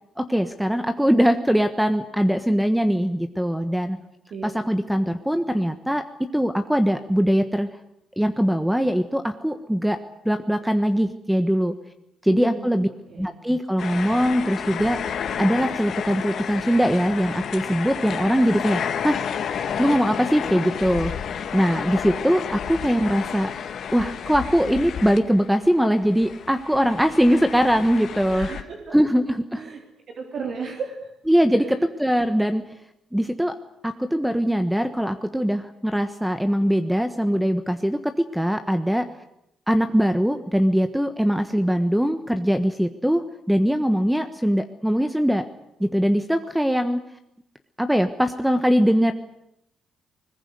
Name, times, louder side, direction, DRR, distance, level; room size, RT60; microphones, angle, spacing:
voice 1, 0.2-4.0 4.4-7.7 8.2-11.8 12.2-12.9 13.2-19.2 19.8-21.1 21.5-23.5 23.9-28.5 28.9-29.6 31.3-32.6 33.1-33.6 33.8-39.1 39.7-45.5 45.8-47.0 47.8-49.1, equal, 5° right, 8 dB, 1.3 m, -21 dB
voice 2, 12.3-13.3 28.3-29.0 29.6-29.8 30.2-31.1 31.5-31.8, right 5 dB, 60° right, 2 dB, 3.7 m, -34 dB
sound 1, 13.8-25.7 26.0-28.6, left 8 dB, 60° left, 2.2 m, -31 dB
21.0 x 20.5 x 9.6 m, 0.80 s
cardioid pair, 90°, 0 cm